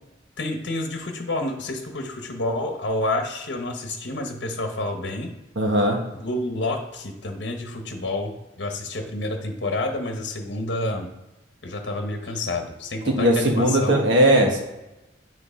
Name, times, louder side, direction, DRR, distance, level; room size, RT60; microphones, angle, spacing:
voice 1, 0.4-5.3 6.1-11.1 11.6-14.0, left 2 dB, 70° left, 4 dB, 0.9 m, -29 dB
voice 2, 5.6-6.0 13.1-14.6, right 1 dB, 75° right, 1 dB, 1.4 m, -19 dB
7.9 x 3.9 x 5.0 m, 1.0 s
head